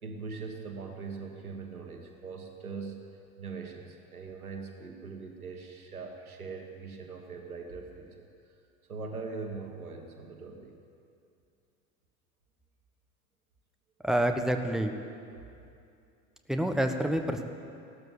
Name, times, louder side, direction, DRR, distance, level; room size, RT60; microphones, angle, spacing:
voice 1, 0.0-3.0 3.4-8.5 8.9-10.8, right 4 dB, 85° right, 3 dB, 1.4 m, -41 dB
voice 2, 14.0-14.9 16.5-17.5, right 1 dB, ahead, 5 dB, 1.2 m, -27 dB
16.0 x 12.5 x 7.0 m, 2.6 s
figure-of-eight pair, 70°, 42 cm